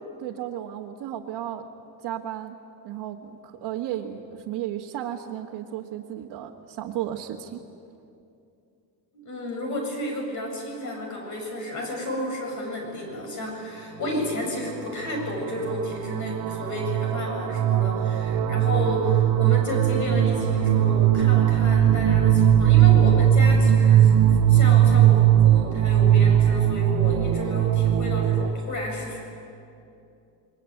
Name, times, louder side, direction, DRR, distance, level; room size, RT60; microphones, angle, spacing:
voice 1, 0.2-1.6 2.0-2.6 2.8-7.6, right 11 dB, 75° right, -2 dB, 1.8 m, -34 dB
voice 2, 9.1-24.1 24.5-29.2, left 1 dB, 45° left, 1 dB, 7.9 m, -31 dB
sound 1, 15.2-15.4 15.7-28.5, right 10 dB, 55° right, 1.1 m, -19 dB
28.0 x 23.0 x 9.2 m, 2.6 s
cardioid pair, 175°, 41 cm